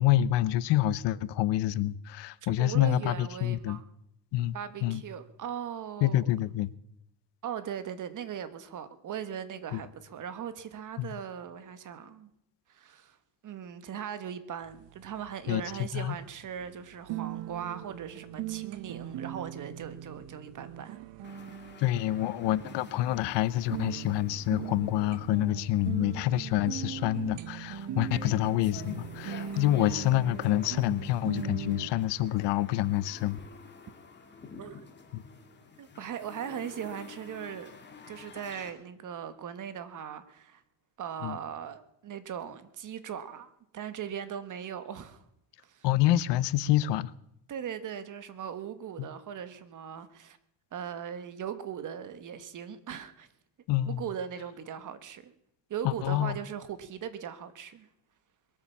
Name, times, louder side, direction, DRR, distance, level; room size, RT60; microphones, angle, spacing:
voice 1, 0.0-3.8 4.3-4.6 4.8-5.0 6.0-6.7 9.7-9.8 11.0-11.2 15.5-16.2 21.8-33.4 35.1-35.2 41.2-41.4 45.8-47.1 49.0-49.1 53.7-54.0 55.8-56.4, left 14 dB, 75° left, 0.8 m, -27 dB
voice 2, 2.4-3.8 4.5-6.3 7.4-12.3 12.7-13.2 13.4-21.5 34.6-34.8 35.8-37.7 38.1-40.6 41.0-45.2 45.6-45.9 47.5-50.4 50.7-53.3 53.8-55.3 55.7-57.9, right 8 dB, 45° right, 1.5 m, -39 dB
sound 1, 14.6-31.9, right 10 dB, 80° right, 1.2 m, -40 dB
sound 2, 21.2-38.7, left 5 dB, 25° left, 2.3 m, -50 dB
22.0 x 8.7 x 7.1 m
cardioid pair, 145°, 42 cm